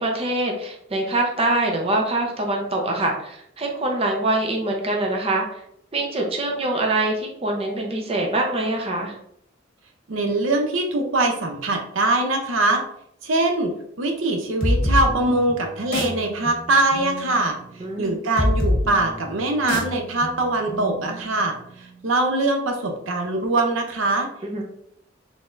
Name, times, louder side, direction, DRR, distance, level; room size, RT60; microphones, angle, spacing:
voice 1, 0.0-5.5 5.9-9.1 17.8-18.2 24.4-24.6, right 2 dB, 30° right, 1 dB, 0.7 m, -24 dB
voice 2, 10.1-12.8 13.2-13.7 14.0-17.6 18.0-21.6 22.0-24.3, right 2 dB, 80° right, 3 dB, 0.6 m, -22 dB
sound 1, 14.6-22.0, left 1 dB, 50° left, 1.3 m, -27 dB
4.0 x 3.4 x 2.5 m, 0.71 s
head